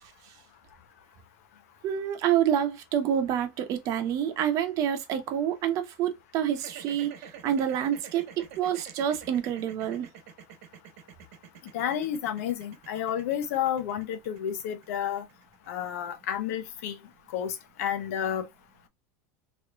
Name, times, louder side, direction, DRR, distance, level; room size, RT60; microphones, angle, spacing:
voice 1, 0.0-0.3 1.8-10.1, right 9 dB, 45° right, 0.8 m, -28 dB
sound 1, 6.5-16.7, right 8 dB, 80° right, 1.3 m, -48 dB
voice 2, 11.7-15.2 15.7-17.0 17.3-18.4, left 9 dB, 85° left, 0.8 m, -31 dB
3.4 x 3.1 x 2.3 m
supercardioid pair, 140°, 8 cm